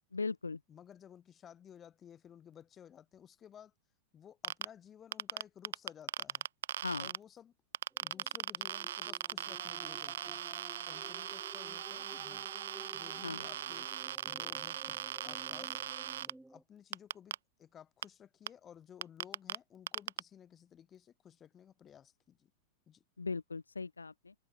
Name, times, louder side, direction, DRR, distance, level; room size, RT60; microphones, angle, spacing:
voice 1, 0.1-0.6 6.8-7.1 13.2-13.5 23.2-24.3, left 4 dB, 80° left, 0.5 m, -38 dB
voice 2, 0.7-3.7 4.1-6.5 7.0-7.5 8.0-10.4 10.8-12.5 12.9-13.9 14.2-15.0 15.2-15.8 16.2-22.5 22.9-23.0, left 9 dB, 25° left, 3.3 m, -56 dB
sound 1, 4.4-4.7 5.1-7.2 7.7-16.3 16.9-17.3 18.0-18.1 18.5-18.6 19.0-19.6 19.9-20.2, right 10 dB, 60° right, 0.4 m, -39 dB
sound 2, 7.9-16.6, right 2 dB, 5° right, 2.7 m, -54 dB
open air
figure-of-eight pair, 90°, 0 cm